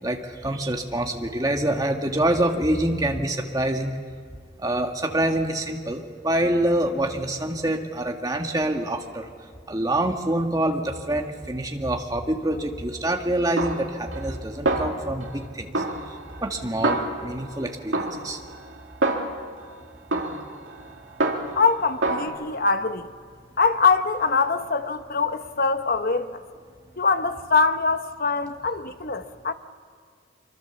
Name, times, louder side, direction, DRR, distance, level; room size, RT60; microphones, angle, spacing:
voice 1, 0.0-4.0 4.6-9.3 9.7-15.8 16.4-18.4, right 1 dB, 20° right, 1.8 m, -26 dB
Snare drum, 13.6-14.4 14.7-15.4 15.7-17.5 17.9-19.6 20.1-21.7 22.0-22.3, right 2 dB, 75° right, 2.7 m, -27 dB
voice 2, 21.5-23.1 23.6-26.4 27.0-29.5, left 4 dB, 50° left, 1.1 m, -23 dB
24.5 x 24.5 x 7.2 m
head